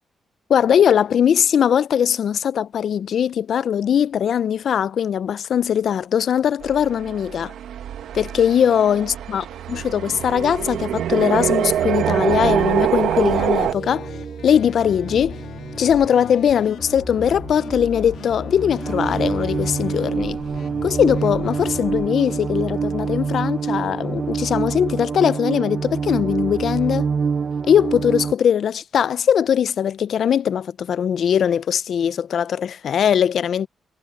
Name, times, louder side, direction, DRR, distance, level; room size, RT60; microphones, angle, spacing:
voice 1, 0.5-7.5 8.1-14.1 14.4-15.4 15.8-20.4 20.8-27.1 27.7-33.7, left 8 dB, 55° left, 0.3 m, -20 dB
sound 1, 6.6-13.7, right 10 dB, 90° right, 1.1 m, -24 dB
sound 2, 12.0-28.3, right 6 dB, 35° right, 0.6 m, -27 dB
sound 3, 12.6-22.1, left 9 dB, 80° left, 2.8 m, -38 dB
wide cardioid pair, 155°, 0 cm